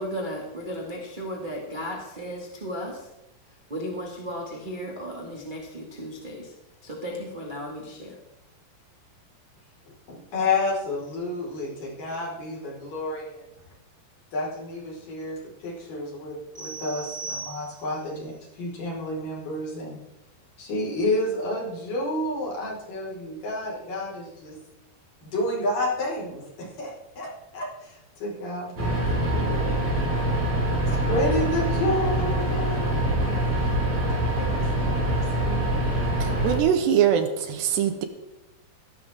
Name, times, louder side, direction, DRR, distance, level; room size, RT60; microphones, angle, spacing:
voice 1, 0.0-3.0 3.7-6.5 6.8-8.2, equal, 25° right, -2 dB, 1.1 m, -35 dB
voice 2, 10.1-13.4 14.3-20.0 20.6-24.6 25.2-29.8 30.9-33.0 34.4-35.7, left 1 dB, 50° left, -4 dB, 6.4 m, -30 dB
sound 1, 16.5-18.1, right 4 dB, 5° left, 4.6 m, -38 dB
sound 2, 28.8-36.6, right 1 dB, 40° right, 7.0 m, -24 dB
voice 3, 36.2-38.1, right 9 dB, 75° right, 8 dB, 3.1 m, -22 dB
16.5 x 14.5 x 3.7 m, 0.93 s
omnidirectional pair, 5.2 m